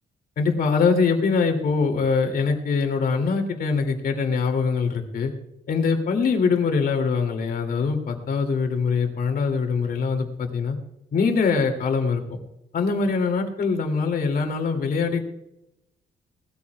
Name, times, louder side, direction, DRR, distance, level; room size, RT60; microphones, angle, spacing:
voice 1, 0.4-5.3 5.7-10.8 11.1-12.4 12.7-15.2, left 5 dB, 60° left, 4 dB, 2.6 m, -23 dB
19.5 x 14.0 x 2.3 m, 0.87 s
cardioid pair, 140°, 17 cm